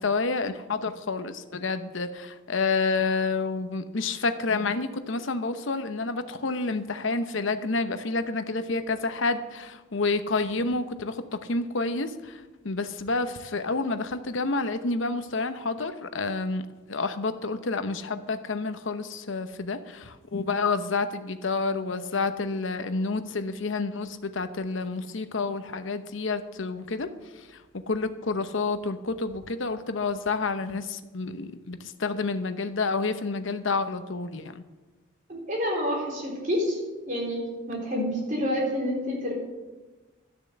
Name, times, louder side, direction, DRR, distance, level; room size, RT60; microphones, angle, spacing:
voice 1, 0.0-16.6 16.9-27.1 27.4-27.6 27.9-34.6, left 3 dB, 65° left, 10 dB, 0.8 m, -29 dB
voice 2, 35.3-36.8 37.1-39.3, equal, 40° right, -2 dB, 4.0 m, -28 dB
12.5 x 6.8 x 7.9 m, 1.2 s
head